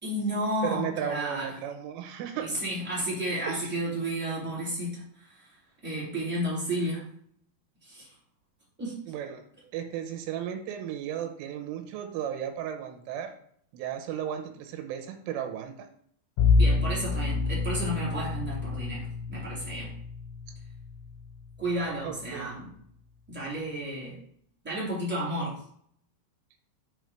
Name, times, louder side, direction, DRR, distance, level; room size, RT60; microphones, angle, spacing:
voice 1, 0.0-1.5 2.4-5.0 5.8-7.0 7.9-8.1 8.8-9.0 16.6-19.9 21.6-22.7 23.3-24.1 24.6-25.5, right 1 dB, 5° right, -7 dB, 1.9 m, -32 dB
voice 2, 0.6-2.5 3.5-3.7 9.1-9.4 9.7-13.3 13.7-15.9 22.0-22.5, right 9 dB, 90° right, 5 dB, 3.5 m, -35 dB
Bowed string instrument, 16.4-21.5, left 4 dB, 80° left, 3.3 m, -27 dB
8.0 x 4.3 x 4.9 m, 0.64 s
omnidirectional pair, 5.7 m